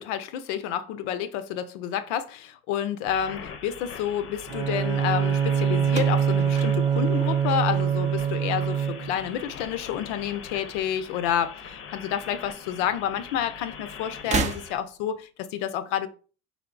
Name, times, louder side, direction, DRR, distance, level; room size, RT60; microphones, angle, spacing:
voice 1, 0.0-16.1, left 10 dB, 85° left, 0.6 m, -29 dB
sound 1, 3.1-14.8, left 6 dB, 40° left, 0.6 m, -42 dB
Bowed string instrument, 4.5-9.3, right 8 dB, 90° right, 0.6 m, -24 dB
sound 2, 5.9-8.2 8.5-9.1 10.1-11.2 11.4-11.5 12.7-12.8 14.1-15.2, right 5 dB, 20° right, 0.3 m, -33 dB
4.3 x 3.4 x 2.5 m
supercardioid pair, 115°, 34 cm